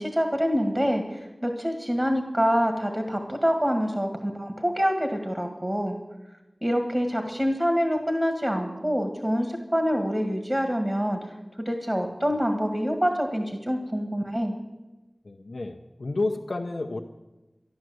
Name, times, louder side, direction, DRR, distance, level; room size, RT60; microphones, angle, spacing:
voice 1, 0.0-6.0 6.6-11.3 11.7-14.6, equal, 25° right, 5 dB, 1.8 m, -26 dB
voice 2, 15.2-17.0, left 2 dB, 85° left, 2 dB, 0.9 m, -30 dB
13.5 x 11.0 x 7.9 m, 1.1 s
wide cardioid pair, 55°, 0 cm